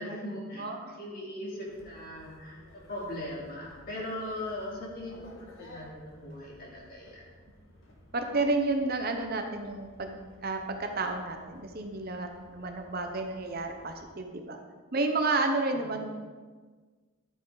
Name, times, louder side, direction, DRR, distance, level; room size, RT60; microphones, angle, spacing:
voice 1, 0.0-5.3 5.6-7.3 15.6-16.0, left 1 dB, 40° left, -4 dB, 2.9 m, -39 dB
voice 2, 0.6-1.0 8.1-14.6 14.9-16.1, right 3 dB, 45° right, 5 dB, 0.8 m, -31 dB
sound 1, 1.7-14.1, left 1 dB, 65° left, 1.9 m, -55 dB
12.0 x 8.6 x 4.0 m, 1.4 s
head